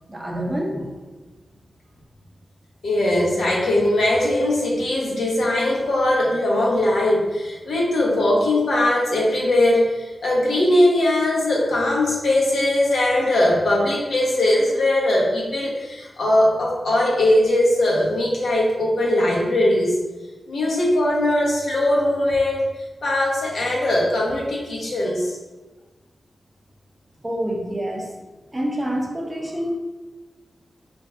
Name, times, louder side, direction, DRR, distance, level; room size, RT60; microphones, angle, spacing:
voice 1, 0.1-0.9 27.2-28.2 28.5-29.7, equal, 15° right, -2 dB, 0.6 m, -27 dB
voice 2, 2.8-20.0 20.5-22.6 23.0-25.4, left 1 dB, 75° left, -3 dB, 1.0 m, -20 dB
4.6 x 2.6 x 3.5 m, 1.2 s
wide cardioid pair, 170°, 0 cm